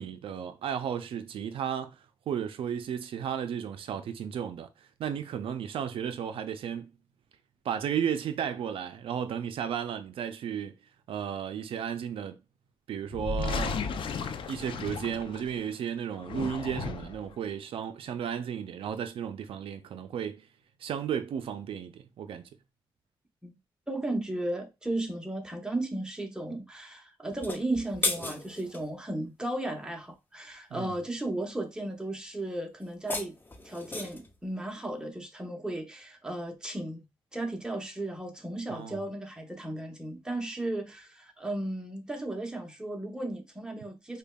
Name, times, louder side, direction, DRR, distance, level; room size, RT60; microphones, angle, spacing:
voice 1, 0.0-2.0 2.3-6.9 7.6-10.7 11.1-12.4 12.9-13.8 14.5-20.5 20.8-22.4 30.7-31.0 38.7-39.0, right 8 dB, 80° right, 0.4 m, -34 dB
sound 1, 13.1-15.7 16.1-17.3, left 4 dB, 70° left, 0.4 m, -34 dB
voice 2, 23.9-33.3 33.6-37.1 37.3-44.2, right 1 dB, 10° right, 0.8 m, -35 dB
sound 2, 27.3-28.9 32.8-34.3, left 3 dB, 20° left, 0.5 m, -34 dB
5.1 x 2.2 x 2.2 m
cardioid pair, 90°, 9 cm